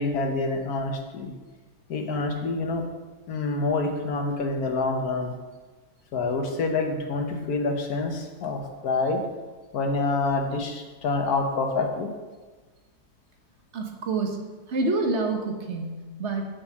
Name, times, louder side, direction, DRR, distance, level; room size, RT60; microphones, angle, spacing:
voice 1, 0.0-1.3 1.9-2.8 3.3-5.3 6.1-9.2 9.7-12.1, left 3 dB, 70° left, 3 dB, 1.5 m, -27 dB
voice 2, 13.7-14.4 14.7-16.5, right 3 dB, 45° right, 2 dB, 1.3 m, -27 dB
7.2 x 5.2 x 7.1 m, 1.3 s
omnidirectional pair, 1.8 m